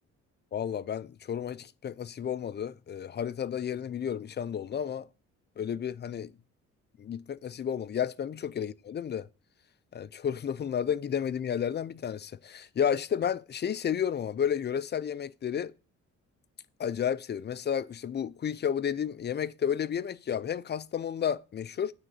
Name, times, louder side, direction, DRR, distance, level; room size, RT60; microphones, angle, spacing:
voice 1, 0.5-5.1 5.6-6.3 7.0-9.3 9.9-15.7 16.8-21.9, left 8 dB, 35° left, 0.5 m, -32 dB
8.8 x 3.9 x 6.7 m
cardioid pair, 90°, 30 cm